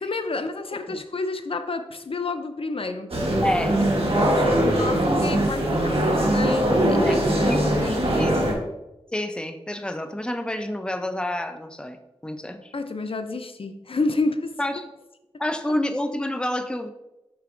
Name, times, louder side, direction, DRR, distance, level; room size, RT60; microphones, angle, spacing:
voice 1, 0.0-3.2 3.8-3.9 4.2-8.6 12.7-14.5, left 3 dB, 60° left, 8 dB, 0.5 m, -30 dB
sound 1, 3.1-8.5, right 1 dB, 60° right, 1.3 m, -21 dB
voice 2, 3.4-3.8 7.0-8.4 9.1-12.0 12.2-12.7 14.6-14.9 15.4-16.9, left 1 dB, 10° left, 7 dB, 0.5 m, -29 dB
7.0 x 5.6 x 2.5 m, 0.98 s
wide cardioid pair, 65°, 11 cm